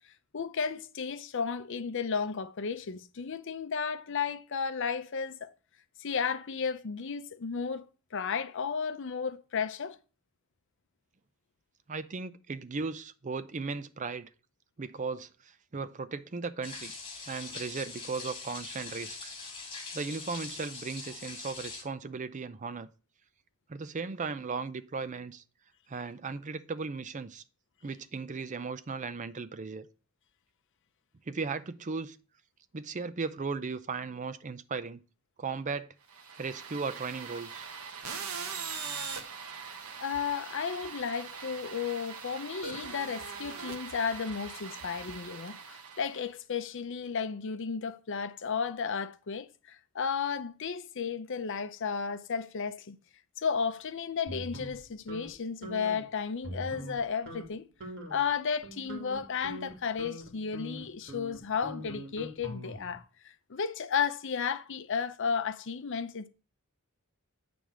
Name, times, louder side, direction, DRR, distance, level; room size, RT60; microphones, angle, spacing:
voice 1, 0.3-5.5 6.0-10.0 40.0-53.0 53.4-57.7 58.1-66.3, left 6 dB, 60° left, 0.6 m, -33 dB
voice 2, 11.9-14.3 14.8-15.3 15.7-16.9 17.3-19.3 19.9-22.9 23.7-25.4 25.9-27.4 27.8-29.9 31.3-32.2 32.7-35.0 35.4-35.9 36.4-37.7, right 4 dB, 35° right, 0.5 m, -36 dB
sound 1, 16.6-21.8, left 4 dB, 25° left, 2.0 m, -42 dB
sound 2, 36.1-46.3, right 5 dB, 85° right, 1.1 m, -41 dB
sound 3, 54.3-55.3 55.6-56.0 56.4-57.0 57.3-57.5 57.8-58.2 58.6-63.0, equal, 55° right, 2.2 m, -43 dB
9.0 x 3.5 x 6.1 m
head